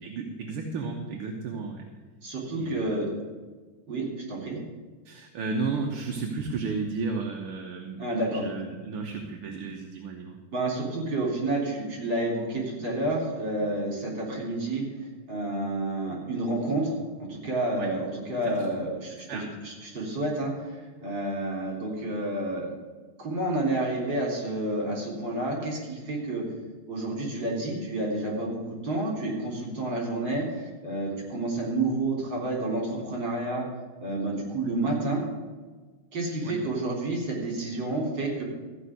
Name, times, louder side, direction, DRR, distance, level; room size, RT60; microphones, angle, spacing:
voice 1, 0.0-1.9 2.5-3.0 5.1-10.4 17.7-17.9 18.4-18.7 19.1-19.6 36.4-36.7, right 4 dB, 80° right, 1 dB, 2.0 m, -33 dB
voice 2, 2.2-3.1 3.9-4.6 8.0-8.4 10.5-14.8 15.3-16.9 17.2-22.8 23.2-26.4 26.9-33.7 34.0-35.2 36.1-38.4, right 2 dB, 55° right, -2 dB, 4.3 m, -30 dB
14.0 x 5.5 x 9.3 m, 1.3 s
omnidirectional pair, 2.4 m